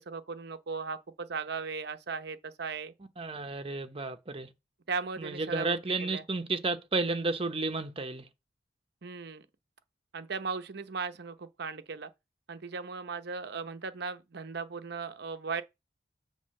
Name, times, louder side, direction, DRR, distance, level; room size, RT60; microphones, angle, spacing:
voice 1, 0.0-2.9 4.9-6.2 9.0-9.5 10.1-12.1 12.5-15.6, right 5 dB, 65° right, 0.8 m, -37 dB
voice 2, 3.2-4.5 5.2-8.3, right 3 dB, 30° right, 0.8 m, -32 dB
7.6 x 3.5 x 6.4 m
head